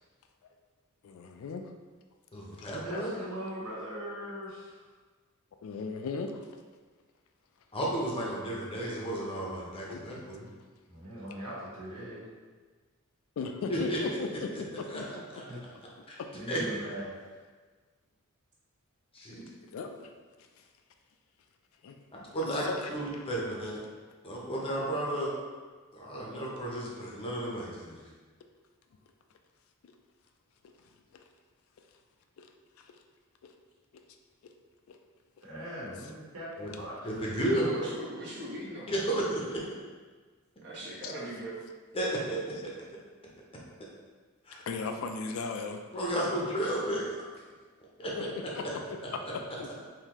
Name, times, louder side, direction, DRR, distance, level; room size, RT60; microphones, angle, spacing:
voice 1, 1.0-1.7 2.5-3.0 5.6-6.5 9.8-10.2 13.4-15.2 15.5-15.6 16.2-16.3 19.3-20.1 21.8-22.0 22.4-23.2 29.8-29.9 31.1-31.2 32.4-32.5 32.8-32.9 33.4-33.5 33.9-34.0 34.9-35.0 41.0-41.1 44.7-45.8 48.2-49.7, left 4 dB, 70° left, 5 dB, 0.3 m, -38 dB
voice 2, 2.3-3.1 7.7-10.5 13.7-14.2 14.5-14.6 14.9-15.0 15.3-15.4 16.1-16.2 16.5-16.6 19.1-19.4 22.3-23.8 24.2-25.3 25.9-28.1 36.6-36.7 37.0-37.7 38.9-39.6 41.9-42.7 44.5-44.6 45.9-47.2 48.0-48.3, right 1 dB, 25° left, -4 dB, 0.6 m, -33 dB
voice 3, 2.8-4.9 10.9-12.3 15.5-15.6 16.3-17.4 35.4-37.0, equal, 75° right, -7 dB, 1.3 m, -40 dB
voice 4, 37.5-39.0 40.6-41.6, right 1 dB, 55° right, -5 dB, 1.0 m, -40 dB
3.7 x 2.7 x 2.9 m, 1.4 s
head